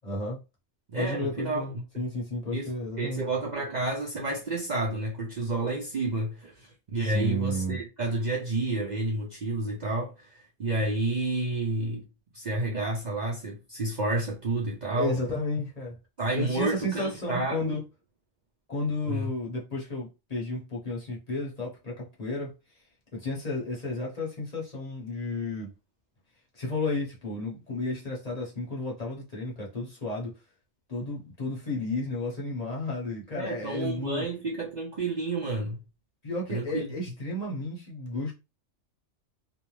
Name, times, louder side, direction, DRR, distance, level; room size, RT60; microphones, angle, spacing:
voice 1, 0.0-0.4 1.0-3.2 7.0-7.8 14.9-15.9 16.3-17.8 18.7-22.5 23.1-25.7 26.5-30.3 30.9-34.2 36.2-38.3, left 2 dB, 35° left, 0.8 m, -32 dB
voice 2, 0.9-1.7 2.5-12.1 12.3-15.2 16.2-17.8 19.0-19.3 33.3-35.8 36.5-36.9, right 2 dB, 50° right, 0.6 m, -30 dB
2.6 x 2.1 x 3.1 m
omnidirectional pair, 1.3 m